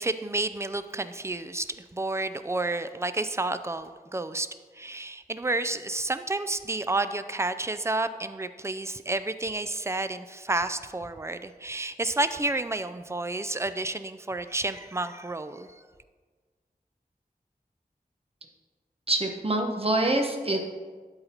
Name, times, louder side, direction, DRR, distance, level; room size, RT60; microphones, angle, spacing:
voice 1, 0.0-4.5 4.7-15.8, right 2 dB, 15° right, 11 dB, 0.4 m, -30 dB
voice 2, 19.1-20.6, right 2 dB, 40° right, 2 dB, 1.0 m, -25 dB
12.0 x 4.0 x 4.4 m, 1.5 s
wide cardioid pair, 70°, 16 cm